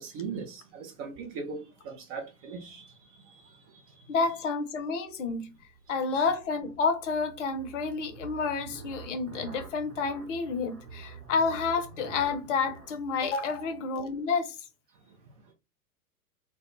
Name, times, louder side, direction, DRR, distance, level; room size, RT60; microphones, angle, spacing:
voice 1, 0.0-2.9 3.2-3.6 3.9-4.1, right 5 dB, 25° right, 0.5 m, -39 dB
voice 2, 4.1-5.5 5.9-14.5, left 4 dB, 50° left, 0.6 m, -29 dB
sound 1, 4.8-14.4, right 5 dB, 60° right, 0.8 m, -47 dB
2.1 x 2.1 x 2.8 m
figure-of-eight pair, 95°, 46 cm